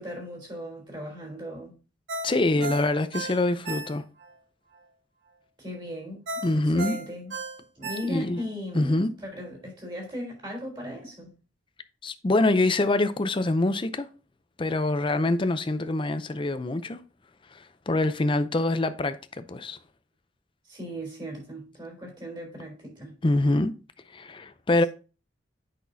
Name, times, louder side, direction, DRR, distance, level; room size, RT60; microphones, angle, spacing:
voice 1, 0.0-1.7 2.5-2.7 5.6-7.3 7.8-11.3 20.7-23.1, equal, 25° right, 3.7 m, -38 dB
Ringtone, 2.1-4.3 4.7-4.8 6.3-8.5 8.9-9.0, right 3 dB, 70° right, 1.7 m, -35 dB
voice 2, 2.2-4.0 6.4-7.0 8.0-8.4 8.7-9.1 12.0-14.1 14.6-17.0 17.5-19.8 23.2-23.7 24.1-24.9, left 2 dB, 25° left, 0.5 m, -25 dB
8.4 x 5.9 x 2.7 m
head